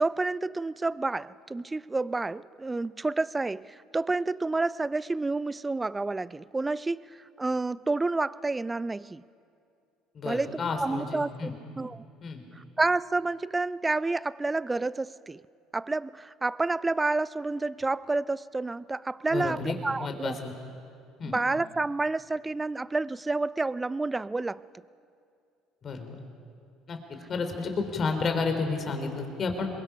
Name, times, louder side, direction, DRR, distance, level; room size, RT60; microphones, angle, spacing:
voice 1, 0.0-9.2 10.2-11.5 11.8-12.0 12.6-15.4 15.7-20.4 21.2-24.7, right 3 dB, 20° right, 0.5 m, -29 dB
voice 2, 10.1-11.5 12.2-12.4 19.3-19.7 20.0-20.5 21.2-21.4 25.8-26.2 26.9-27.0 27.3-29.7, left 4 dB, 40° left, 3.5 m, -31 dB
26.0 x 22.0 x 5.8 m
hypercardioid pair, 65°, 0 cm